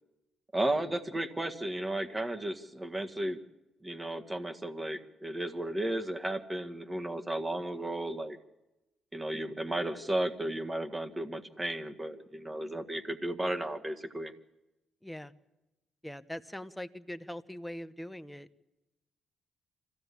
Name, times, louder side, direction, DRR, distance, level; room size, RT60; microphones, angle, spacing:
voice 1, 0.5-3.4 3.8-8.4 9.1-14.3, right 1 dB, 15° right, 6 dB, 1.7 m, -34 dB
voice 2, 15.0-15.3 16.0-18.5, left 1 dB, 5° left, 10 dB, 1.0 m, -42 dB
25.0 x 15.5 x 8.4 m, 0.98 s
cardioid pair, 90°, 0 cm